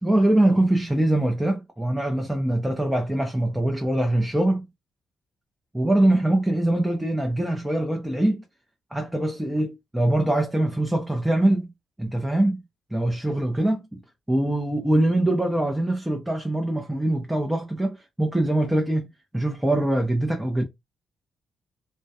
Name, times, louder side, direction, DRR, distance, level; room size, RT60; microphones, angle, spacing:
voice 1, 0.0-4.6 5.7-8.4 8.9-11.7 12.0-12.6 12.9-14.0 14.3-20.6, right 1 dB, 10° right, 0.6 m, -23 dB
2.2 x 2.2 x 2.7 m
hypercardioid pair, 50°, 0 cm